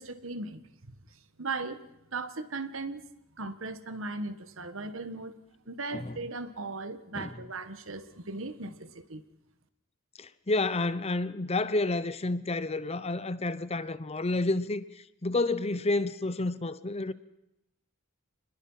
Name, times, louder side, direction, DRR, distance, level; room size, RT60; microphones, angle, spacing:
voice 1, 0.0-1.8 2.1-3.0 3.4-5.3 5.7-9.2, right 3 dB, 65° right, 1.6 m, -38 dB
voice 2, 10.2-17.1, left 2 dB, 30° left, 0.8 m, -30 dB
27.5 x 21.0 x 5.7 m
head